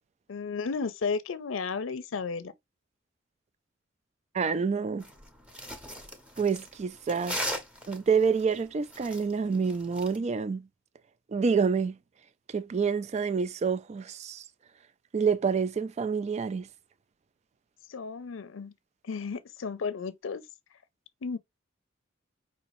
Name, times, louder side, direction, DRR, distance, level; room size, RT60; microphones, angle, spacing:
voice 1, 0.3-2.5 17.9-18.7 19.0-20.4 21.2-21.4, left 5 dB, 85° left, 0.5 m, -33 dB
voice 2, 4.3-5.0 6.4-7.4 7.9-10.7 11.3-12.0 12.5-14.4 15.1-16.7, right 5 dB, 35° right, 0.3 m, -27 dB
sound 1, 5.0-10.2, equal, 5° right, 0.8 m, -38 dB
5.1 x 2.8 x 3.0 m
head